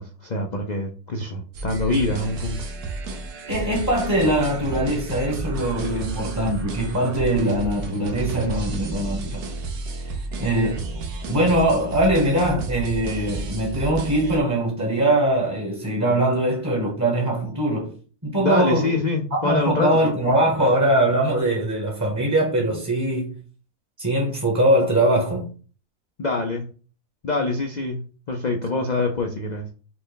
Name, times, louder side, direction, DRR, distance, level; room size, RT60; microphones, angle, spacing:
voice 1, 0.0-2.6 5.9-6.0 18.4-20.1 26.2-26.7 27.2-28.0 28.3-29.7, left 3 dB, 65° left, 0.4 m, -25 dB
sound 1, 1.5-14.4, right 3 dB, 75° right, 1.3 m, -31 dB
voice 2, 3.5-9.5 10.0-10.1 10.4-10.9 11.3-18.0 18.2-19.0 19.3-23.4 24.0-25.5, right 1 dB, 15° right, 0.7 m, -22 dB
6.1 x 2.2 x 3.9 m
omnidirectional pair, 1.7 m